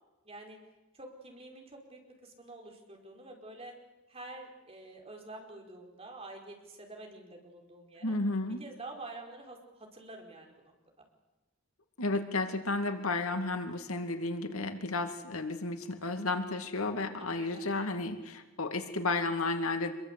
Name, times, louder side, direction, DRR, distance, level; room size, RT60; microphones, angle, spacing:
voice 1, 0.2-0.6 0.9-3.7 4.1-8.2 8.6-10.5 17.3-17.8, right 2 dB, 30° right, 2 dB, 5.1 m, -48 dB
voice 2, 8.0-8.6 12.0-19.9, left 2 dB, 80° left, 7 dB, 2.4 m, -32 dB
26.0 x 23.0 x 8.3 m, 1.1 s
head